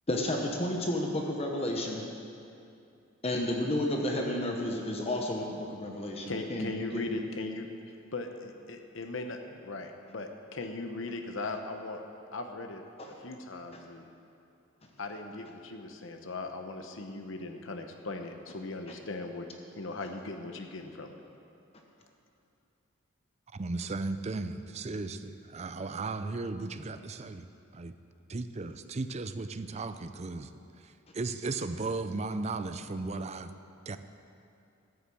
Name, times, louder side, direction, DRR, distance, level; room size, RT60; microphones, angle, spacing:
voice 1, 0.1-2.1 3.2-5.4 5.7-7.2 13.0-13.1 13.7-13.8, left 1 dB, 30° left, 1 dB, 1.0 m, -31 dB
voice 2, 6.3-7.7 8.1-12.0 12.3-14.1 15.0-19.5 19.7-21.1, left 3 dB, 75° left, 5 dB, 0.9 m, -39 dB
voice 3, 23.5-27.4 27.7-27.9 28.3-30.5 30.8-33.5 33.9-34.0, right 3 dB, 35° right, 10 dB, 0.5 m, -36 dB
13.5 x 6.9 x 7.7 m, 2.6 s
head